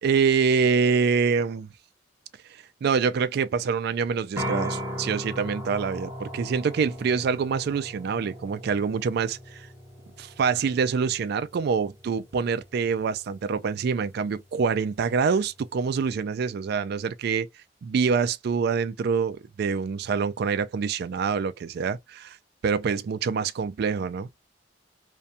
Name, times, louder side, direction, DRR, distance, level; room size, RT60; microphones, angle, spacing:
voice 1, 0.0-1.7 2.8-9.7 10.2-17.5 17.8-22.4 22.6-24.3, right 5 dB, 55° right, 0.3 m, -25 dB
sound 1, 4.4-16.1, equal, 15° right, 0.8 m, -39 dB
2.5 x 2.2 x 2.6 m
head